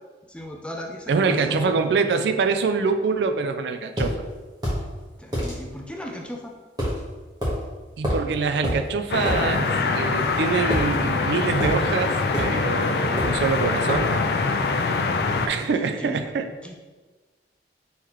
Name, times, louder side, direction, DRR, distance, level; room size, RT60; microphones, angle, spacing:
voice 1, 0.3-1.8 5.2-6.5 16.0-16.3 16.6-16.7, equal, 5° left, 1 dB, 0.4 m, -36 dB
voice 2, 1.1-4.2 8.0-14.1 15.5-16.5, right 4 dB, 75° right, 8 dB, 0.3 m, -25 dB
sound 1, 4.0-4.1 4.6-4.8 5.3-5.5 6.8-7.0 7.4-7.6 8.0-8.3 8.6-8.8 9.2-9.4 10.7-11.2 11.6-11.8 12.3-12.6 13.2-13.4 13.9-14.1, equal, 25° right, 1.1 m, -26 dB
sound 2, 9.1-15.5, left 4 dB, 60° left, 0.4 m, -24 dB
5.6 x 3.1 x 3.0 m, 1.3 s
head